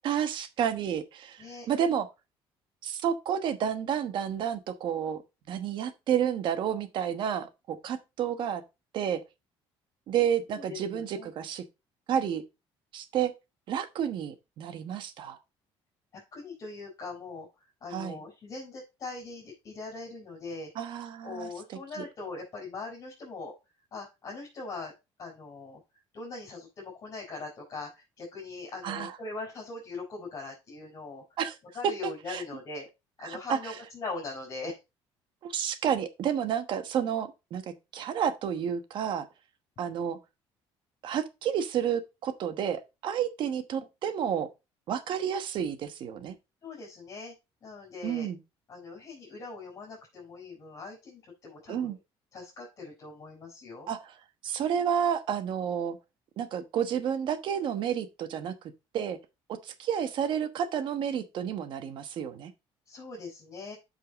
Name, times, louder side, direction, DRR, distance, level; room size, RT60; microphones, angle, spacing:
voice 1, 0.0-2.1 2.8-5.2 5.5-8.6 8.9-9.2 10.1-11.6 12.1-12.4 12.9-13.3 13.7-15.4 17.9-18.2 20.7-22.0 28.8-29.2 31.4-31.5 32.0-32.4 33.2-33.7 35.4-39.3 39.8-40.2 41.0-44.5 44.9-46.4 48.0-48.4 51.7-52.0 53.9-54.1 54.4-56.0 56.4-58.5 58.9-59.2 59.5-62.5, right 8 dB, 55° right, 1.2 m, -30 dB
voice 2, 10.5-11.3 16.1-17.5 17.8-20.7 21.2-23.5 23.9-24.9 25.2-25.8 26.1-31.2 31.7-32.9 33.2-34.8 46.6-47.3 47.6-48.3 48.7-52.0 52.3-53.9 62.9-63.8, left 3 dB, 35° left, 4.1 m, -41 dB
8.5 x 5.7 x 3.9 m
cardioid pair, 150°, 10 cm